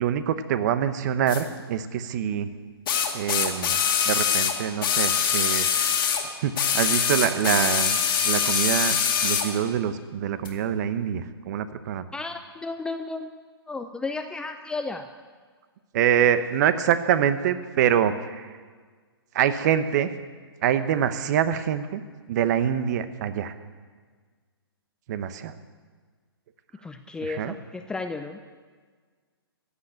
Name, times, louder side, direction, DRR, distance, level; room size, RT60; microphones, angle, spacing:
voice 1, 0.0-2.5 3.1-3.8 4.1-5.7 6.4-9.0 9.2-12.0 15.9-18.5 19.3-20.1 20.6-22.0 22.3-23.5 25.1-25.5 27.2-27.5, right 9 dB, 45° right, 12 dB, 1.0 m, -25 dB
sound 1, 1.3-1.4 2.9-6.2 6.5-9.5 10.4-10.5, left 7 dB, 55° left, 2.1 m, -23 dB
voice 2, 12.1-13.3 13.7-15.1 26.8-28.4, left 3 dB, 5° left, 7 dB, 0.5 m, -33 dB
15.0 x 8.0 x 8.8 m, 1.5 s
hypercardioid pair, 135°, 13 cm